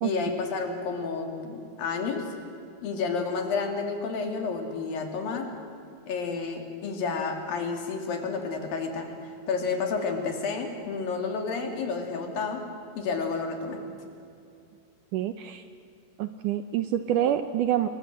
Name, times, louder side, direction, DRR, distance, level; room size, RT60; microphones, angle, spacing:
voice 1, 0.0-2.2 2.8-5.5 6.1-12.6 13.0-13.8, left 4 dB, 65° left, 4 dB, 4.3 m, -30 dB
voice 2, 15.1-15.6 16.2-17.9, right 11 dB, 75° right, 9 dB, 2.0 m, -26 dB
27.5 x 22.5 x 7.8 m, 2.6 s
omnidirectional pair, 4.4 m